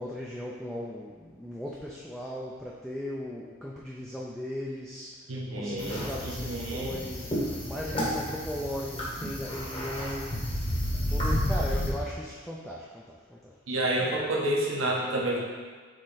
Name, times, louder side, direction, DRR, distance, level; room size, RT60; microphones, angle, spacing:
voice 1, 0.0-5.1 5.6-10.4 11.1-13.5 13.8-14.3, left 1 dB, ahead, -4 dB, 0.3 m, -37 dB
voice 2, 5.3-7.0 13.7-15.4, right 1 dB, 80° right, -2 dB, 1.0 m, -29 dB
sound 1, 5.8-11.9, equal, 25° left, 1.1 m, -31 dB
6.4 x 3.8 x 3.9 m, 1.5 s
head